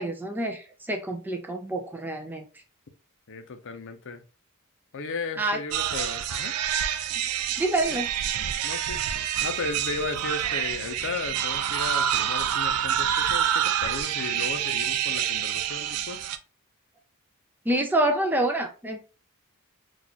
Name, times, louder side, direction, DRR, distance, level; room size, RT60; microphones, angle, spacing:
voice 1, 0.0-2.5 5.4-5.6 7.6-8.1 17.7-19.0, right 1 dB, 10° right, 0.4 m, -27 dB
voice 2, 3.3-4.2 4.9-6.5 7.9-8.0 8.6-9.0 9.4-16.3, left 4 dB, 60° left, 0.6 m, -35 dB
sound 1, 5.7-16.4, right 9 dB, 85° right, 0.4 m, -27 dB
4.1 x 2.4 x 2.8 m
head